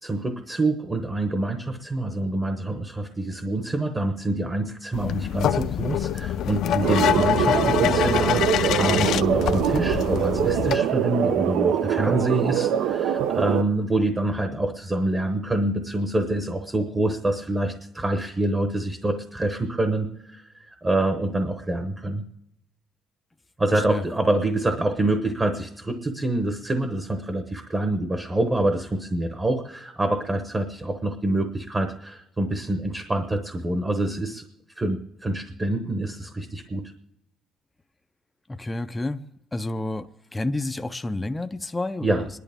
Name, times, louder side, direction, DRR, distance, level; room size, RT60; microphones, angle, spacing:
voice 1, 0.0-22.2 23.6-34.5 34.8-36.8 42.0-42.2, right 2 dB, 15° right, 0.9 m, -26 dB
sound 1, 4.9-10.8, left 10 dB, 60° left, 0.5 m, -25 dB
sound 2, 6.8-13.6, right 9 dB, 80° right, 0.6 m, -23 dB
voice 2, 23.7-24.0 38.5-39.2 39.5-42.3, left 2 dB, 10° left, 0.4 m, -30 dB
26.5 x 11.0 x 3.5 m
cardioid pair, 175°, 0 cm